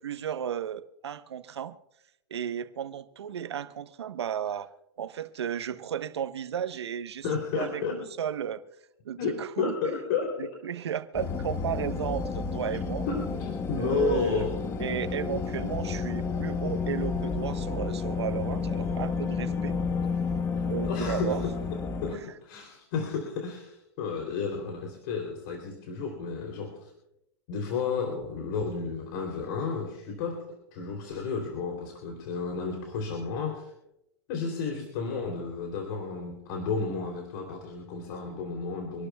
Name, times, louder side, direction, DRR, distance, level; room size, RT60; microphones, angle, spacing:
voice 1, 0.0-1.7 2.3-4.7 5.0-7.2 7.5-8.6 9.0-9.7 10.4-13.1 13.8-14.4 14.8-19.8 20.7-21.4 22.2-22.3, right 9 dB, 90° right, 10 dB, 1.1 m, -34 dB
voice 2, 7.2-8.0 9.2-10.5 13.1-14.6 20.6-26.9 27.5-33.7 34.3-39.1, left 5 dB, 50° left, 2 dB, 3.2 m, -32 dB
sound 1, 11.1-22.2, left 5 dB, 20° left, 0.9 m, -31 dB
26.5 x 12.0 x 2.3 m, 0.86 s
hypercardioid pair, 140°, 14 cm